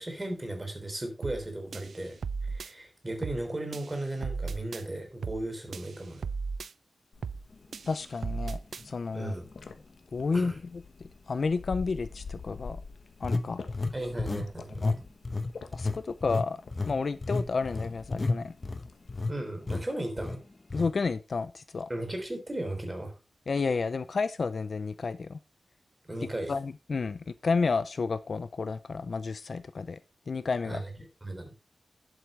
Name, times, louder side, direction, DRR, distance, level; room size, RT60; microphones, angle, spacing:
voice 1, 0.0-2.2 2.4-6.3 9.1-9.5 10.3-10.6 13.9-15.0 19.3-20.4 21.9-23.1 26.0-26.6 30.6-30.9 31.2-31.5, right 1 dB, 20° right, 3.6 m, -36 dB
sound 1, 1.2-1.5 1.7-2.7 3.2-3.5 3.7-4.8 5.2-5.5 5.7-6.7 7.2-7.5 7.7-8.8, right 5 dB, 85° right, 0.4 m, -36 dB
sound 2, 7.1-19.3, left 5 dB, 90° left, 1.3 m, -47 dB
voice 2, 7.9-8.6 8.8-9.4 10.1-10.8 11.3-12.8 13.2-13.6 14.8-15.0 15.7-18.5 20.7-21.9 23.5-25.4 26.5-30.0 30.3-30.8, left 4 dB, 55° left, 0.6 m, -31 dB
sound 3, 8.8-8.9 9.5-9.7 13.2-14.5 14.7-15.0 15.2-19.3 19.7-19.8 20.2-20.4 20.7-20.9, left 3 dB, 30° left, 1.0 m, -31 dB
11.5 x 8.1 x 3.3 m
wide cardioid pair, 140°, 0 cm